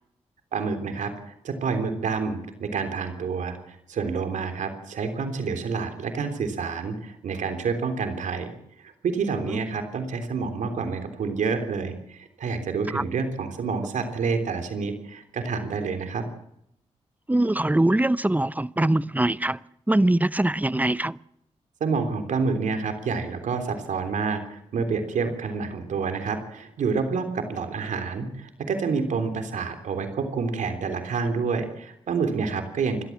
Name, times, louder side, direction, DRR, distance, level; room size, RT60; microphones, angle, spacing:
voice 1, 0.5-8.5 8.8-16.3 21.8-33.0, right 5 dB, 80° right, 3.5 m, -28 dB
voice 2, 17.3-19.6 19.9-21.2, right 1 dB, 15° right, 0.8 m, -22 dB
28.5 x 13.0 x 7.3 m
cardioid pair, 50°, 13 cm